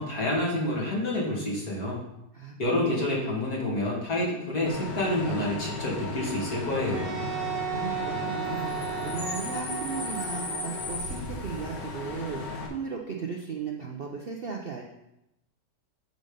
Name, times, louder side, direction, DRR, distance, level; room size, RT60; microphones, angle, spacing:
voice 1, 0.0-2.0 2.6-7.3, left 1 dB, 60° left, -4 dB, 2.7 m, -28 dB
voice 2, 2.3-2.9 7.7-14.8, right 5 dB, 55° right, 1 dB, 0.6 m, -36 dB
Bus / Idling / Screech, 4.7-12.7, left 3 dB, 75° left, 1.9 m, -35 dB
Wind instrument woodwind instrument, 6.9-11.2, right 8 dB, 85° right, 1.8 m, -35 dB
8.0 x 5.3 x 5.1 m, 0.87 s
omnidirectional pair, 1.9 m